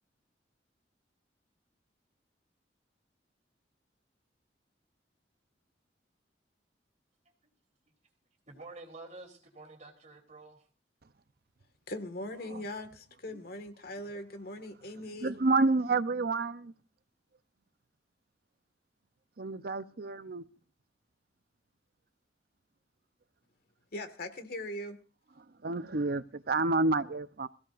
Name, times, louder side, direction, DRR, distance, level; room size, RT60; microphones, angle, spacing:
voice 1, 8.5-10.7, right 2 dB, 40° right, 3.4 m, -49 dB
voice 2, 11.9-15.3 23.9-25.0, left 1 dB, 60° left, 1.9 m, -40 dB
voice 3, 15.2-16.7 19.4-20.4 25.6-27.5, right 3 dB, 60° right, 0.7 m, -29 dB
22.5 x 16.0 x 2.6 m
head